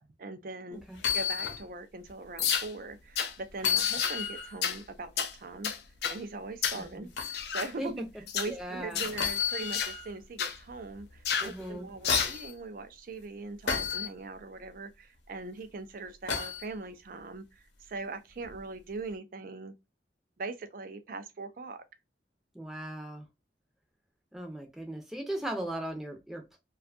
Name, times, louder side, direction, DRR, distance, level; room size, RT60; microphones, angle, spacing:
voice 1, 0.2-0.8 1.1-5.7 6.1-8.0 8.3-19.7 20.4-21.8, right 3 dB, 50° right, 0.4 m, -41 dB
sound 1, 0.9-1.6 2.1-2.2 3.6-4.6 7.2-7.4 9.2-10.1 11.6-12.5 13.7-14.1 16.3-16.6 18.4-18.6, left 7 dB, 90° left, 0.7 m, -31 dB
sound 2, 2.4-2.7 3.2-3.3 3.8-4.2 4.6-4.8 5.2-5.3 5.6-6.2 6.6-6.8 7.3-7.7 8.3-8.5 9.0-9.2 9.7-9.9 10.4-10.6 11.3-11.5 12.0-12.4, left 7 dB, 60° left, 0.4 m, -30 dB
voice 2, 6.7-7.1 7.8-7.9 8.5-9.0 11.4-11.9 22.5-23.3 24.3-26.6, right 1 dB, ahead, 0.5 m, -38 dB
2.6 x 2.3 x 2.3 m
head